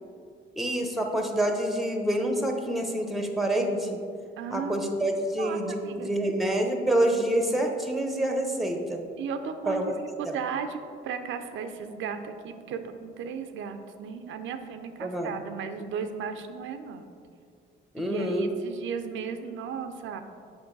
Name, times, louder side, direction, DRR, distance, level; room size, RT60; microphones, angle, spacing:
voice 1, 0.6-4.0 4.5-9.0 9.7-9.9 10.3-10.4 15.0-15.3 17.9-18.5, right 1 dB, ahead, 3 dB, 0.8 m, -27 dB
voice 2, 4.4-4.8 5.4-6.1 9.2-17.1 18.0-20.2, right 6 dB, 80° right, 7 dB, 0.5 m, -35 dB
7.0 x 5.2 x 3.9 m, 2.2 s
cardioid pair, 90°, 20 cm